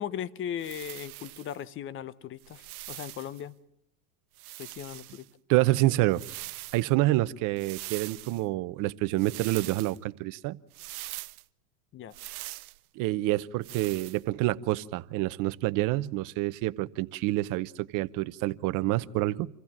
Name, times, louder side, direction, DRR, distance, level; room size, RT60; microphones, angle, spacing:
voice 1, 0.0-3.5 4.6-5.2 11.9-12.1, left 9 dB, 30° left, 0.8 m, -38 dB
sound 1, 0.6-1.6 2.4-3.4 4.3-5.3 6.1-6.9 7.6-8.4 9.2-10.0 10.7-11.4 12.1-12.8 13.6-14.2, right 19 dB, 80° right, 0.7 m, -42 dB
voice 2, 5.5-6.2 6.7-10.6 13.0-19.5, right 18 dB, 45° right, 0.8 m, -27 dB
26.5 x 15.5 x 7.2 m
supercardioid pair, 120°, 44 cm